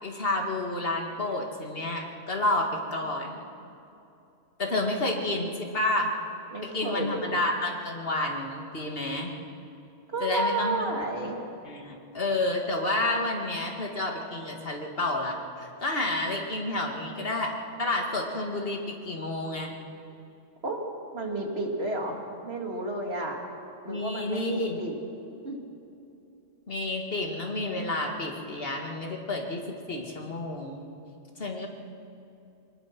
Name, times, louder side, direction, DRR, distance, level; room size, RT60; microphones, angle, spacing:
voice 1, 0.0-3.4 4.6-6.1 6.6-9.3 10.2-10.9 11.7-19.7 23.9-24.8 26.7-29.6 29.9-30.8 31.4-31.7, left 2 dB, 55° left, 1 dB, 2.5 m, -30 dB
voice 2, 5.0-5.5 6.5-7.4 10.1-11.4 20.6-20.8 21.1-23.4 23.8-25.0 25.4-25.6, right 2 dB, 60° right, 0 dB, 2.9 m, -32 dB
23.0 x 20.0 x 6.1 m, 2.7 s
omnidirectional pair, 1.2 m